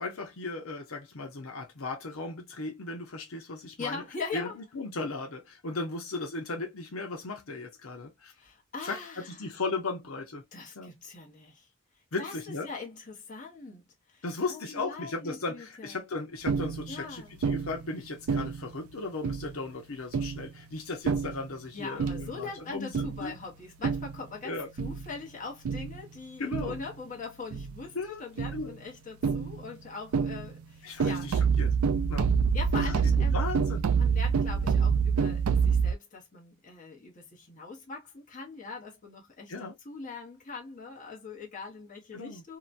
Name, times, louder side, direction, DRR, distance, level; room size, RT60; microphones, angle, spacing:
voice 1, 0.0-4.0 4.3-8.3 8.8-10.4 10.8-10.9 12.1-12.7 14.2-23.3 24.4-24.7 26.4-26.8 27.9-28.2 28.5-28.7 30.8-31.8 32.1-32.3 32.8-32.9 33.3-33.9 39.5-39.7 42.1-42.4, left 3 dB, 80° left, 0.8 m, -36 dB
voice 2, 3.8-4.5 8.4-9.5 10.5-11.7 12.2-16.0 16.9-17.3 21.7-31.3 32.5-33.4 34.0-42.6, left 4 dB, 35° left, 1.0 m, -42 dB
sound 1, 16.5-17.0 17.4-17.9 18.3-18.8 19.2-19.6 20.1-20.5 21.1-21.5 22.0-22.4 22.9-23.3 23.8-24.2 24.8-25.1 25.7-26.0 26.5-26.9 27.5-27.8 28.4-28.7 29.2-29.7 30.1-30.6 31.0-35.9, right 6 dB, 90° right, 0.4 m, -27 dB
2.9 x 2.2 x 2.5 m
head